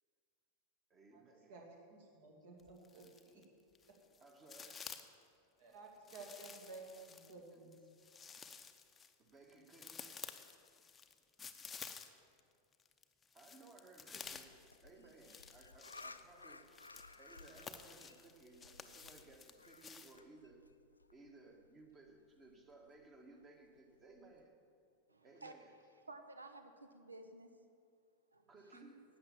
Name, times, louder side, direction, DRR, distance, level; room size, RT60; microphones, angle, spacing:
voice 1, 0.9-1.5 4.2-4.9 8.0-8.1 9.2-10.2 13.3-16.7 17.2-20.6 21.1-24.6 25.2-25.7 28.5-29.0, right 3 dB, 25° right, 3 dB, 1.7 m, -60 dB
voice 2, 1.9-3.4 3.9-4.0 5.6-7.8, right 3 dB, 55° right, -1 dB, 2.5 m, -54 dB
sound 1, 2.6-3.4 3.8-5.2 6.1-12.4 12.7-20.2, left 6 dB, 15° left, 0.7 m, -53 dB
sound 2, 14.2-24.4, left 3 dB, 80° left, 0.5 m, -59 dB
voice 3, 25.1-25.5 26.1-27.5 28.3-28.4 28.7-28.8, right 2 dB, 80° right, 7 dB, 0.9 m, -53 dB
12.0 x 8.8 x 7.2 m, 2.3 s
figure-of-eight pair, 90°, 0 cm